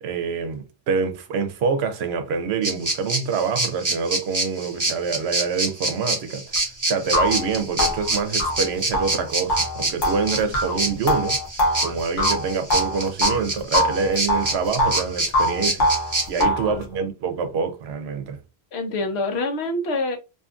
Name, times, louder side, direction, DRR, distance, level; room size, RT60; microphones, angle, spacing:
voice 1, 0.0-6.6 6.9-11.4 11.8-15.9 16.3-18.4, right 5 dB, 75° right, 0.8 m, -26 dB
sound 1, 2.6-16.4, right 2 dB, 25° right, 0.5 m, -26 dB
sound 2, 6.6-6.7 7.1-13.4 13.7-15.0 15.3-16.7, left 1 dB, 50° left, 0.8 m, -23 dB
voice 2, 16.4-16.8 18.7-20.2, left 2 dB, 80° left, 1.0 m, -26 dB
2.7 x 2.5 x 2.3 m
omnidirectional pair, 1.1 m